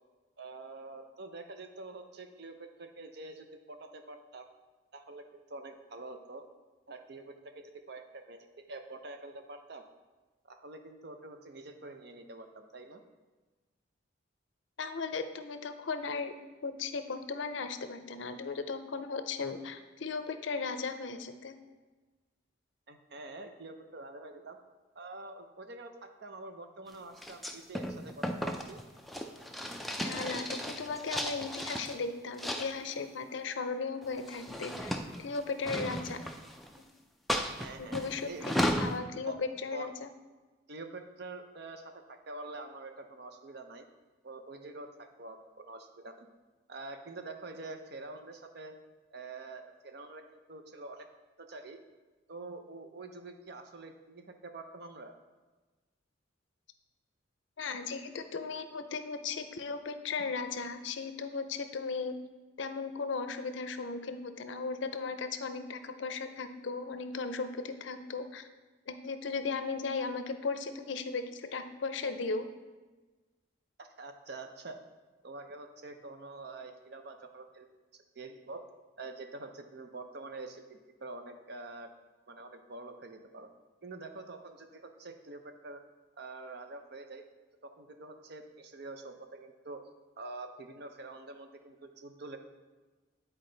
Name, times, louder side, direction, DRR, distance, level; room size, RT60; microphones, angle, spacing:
voice 1, 0.4-4.5 4.9-6.5 6.9-9.8 10.4-13.0 22.9-24.6 24.9-28.8 37.6-38.0 38.3-38.5 39.3-39.4 39.7-39.9 40.7-43.9 44.2-46.3 46.7-48.7 49.1-51.1 51.5-51.8 52.3-55.1 73.8-74.8 75.2-77.7 77.9-78.6 79.0-81.9 82.3-83.5 83.8-85.8 86.2-87.2 87.6-89.8 90.2-92.4, right 3 dB, 55° right, 6 dB, 0.6 m, -46 dB
voice 2, 14.8-16.3 16.6-21.5 30.0-34.9 35.2-36.2 37.8-38.5 38.8-40.1 57.6-62.1 62.6-68.5 68.9-72.5, left 4 dB, 70° left, 9 dB, 0.5 m, -36 dB
sound 1, 27.2-32.0 32.4-33.0 34.0-36.8 37.3-39.0, equal, ahead, 0.3 m, -35 dB
9.5 x 4.4 x 3.9 m, 1.3 s
head